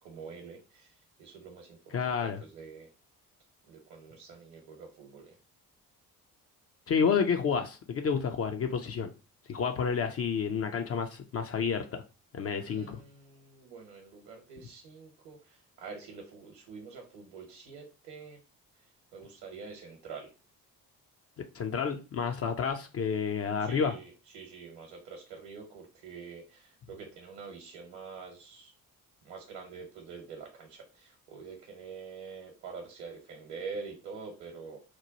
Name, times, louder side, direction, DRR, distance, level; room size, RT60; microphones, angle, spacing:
voice 1, 0.0-2.9 3.7-5.4 12.6-18.4 19.1-20.3 23.6-28.7 29.2-34.8, right 5 dB, 60° right, 1.0 m, -46 dB
voice 2, 1.9-2.4 6.9-9.1 9.5-12.0 12.3-13.0 21.5-23.9, left 6 dB, 30° left, 0.4 m, -30 dB
3.0 x 2.2 x 3.9 m
figure-of-eight pair, 40°, 48 cm